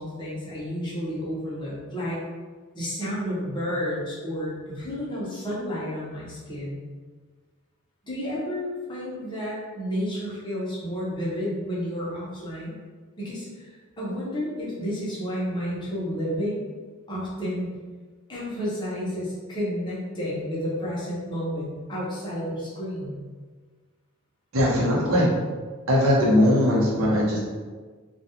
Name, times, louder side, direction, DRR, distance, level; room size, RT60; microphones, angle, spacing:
voice 1, 0.0-2.2 2.7-6.8 8.0-12.8 13.2-13.7 14.0-16.7 17.1-17.7 18.3-23.2, equal, 20° left, -7 dB, 0.7 m, -31 dB
voice 2, 24.5-25.3 25.9-27.4, left 1 dB, 75° right, -5 dB, 0.8 m, -20 dB
2.3 x 2.3 x 2.8 m, 1.4 s
head